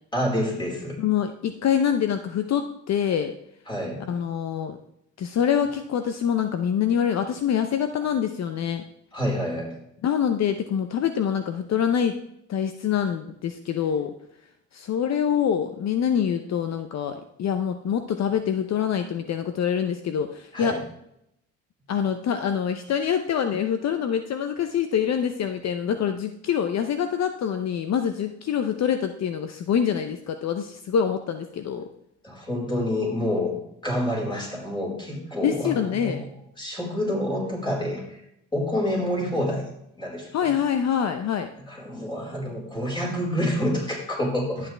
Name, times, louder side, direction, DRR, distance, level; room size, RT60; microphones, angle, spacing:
voice 1, 0.1-1.0 3.7-4.0 9.1-9.7 20.5-20.8 32.2-33.6 33.8-36.3 36.6-38.2 38.5-39.7 40.0-40.3 41.7-44.7, left 1 dB, 15° left, -2 dB, 4.6 m, -27 dB
voice 2, 1.0-3.3 4.1-4.8 5.2-8.8 10.0-12.2 12.5-14.1 14.7-20.8 21.9-31.9 35.4-36.2 40.3-41.5, left 8 dB, 60° left, 8 dB, 0.8 m, -25 dB
12.0 x 8.5 x 3.4 m, 0.78 s
cardioid pair, 90°, 30 cm